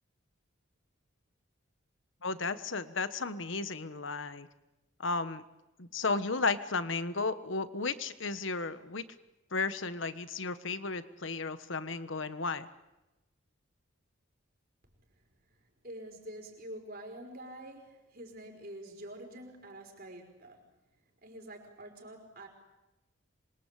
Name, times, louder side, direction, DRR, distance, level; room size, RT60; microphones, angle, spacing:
voice 1, 2.2-4.5 5.0-5.4 5.8-9.0 9.5-12.7, left 3 dB, 70° left, 12 dB, 1.4 m, -34 dB
voice 2, 15.8-20.6 21.2-22.5, right 1 dB, 45° right, 3 dB, 5.3 m, -46 dB
26.5 x 22.5 x 8.4 m, 1.0 s
head